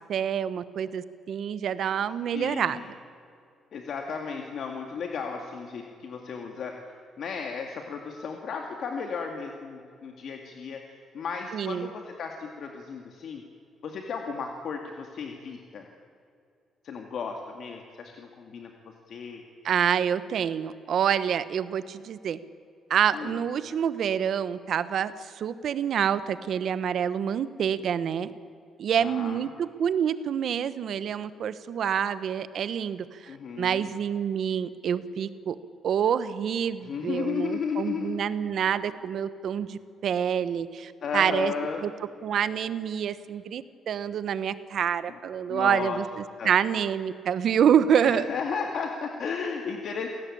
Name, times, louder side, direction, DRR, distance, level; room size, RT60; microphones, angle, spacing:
voice 1, 0.1-2.9 11.5-11.9 19.6-22.4 22.9-28.3 28.8-33.1 33.6-35.6 35.8-41.5 41.8-41.9 42.2-48.3, right 8 dB, 55° right, 14 dB, 1.1 m, -27 dB
voice 2, 2.3-2.8 3.7-6.8 7.2-13.4 13.8-15.9 16.8-18.7 19.1-19.4 23.1-23.4 29.0-29.4 33.3-33.9 36.8-38.2 41.0-41.8 45.5-46.0 46.4-46.5 48.0-50.1, left 6 dB, 50° left, 3 dB, 2.1 m, -34 dB
28.5 x 17.5 x 8.7 m, 2.5 s
cardioid pair, 160°, 0 cm